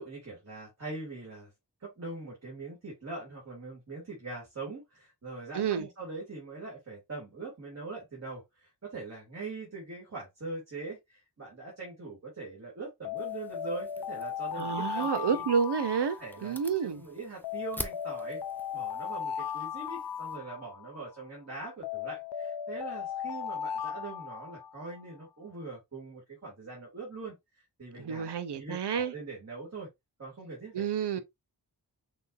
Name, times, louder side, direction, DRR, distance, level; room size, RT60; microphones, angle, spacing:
voice 1, 0.0-1.5 1.8-15.4 16.2-18.4 18.7-29.9 30.2-30.8 31.2-31.3, right 3 dB, 40° right, 2.4 m, -42 dB
voice 2, 5.5-5.9 14.6-17.0 27.9-29.1 30.7-31.2, right 7 dB, 75° right, 0.7 m, -30 dB
Alarm, 13.0-16.8 17.4-21.1 21.8-25.0, left 8 dB, 75° left, 0.6 m, -37 dB
sound 1, 13.2-20.4, left 1 dB, 5° left, 0.6 m, -47 dB
6.1 x 3.1 x 2.5 m
wide cardioid pair, 85°, 41 cm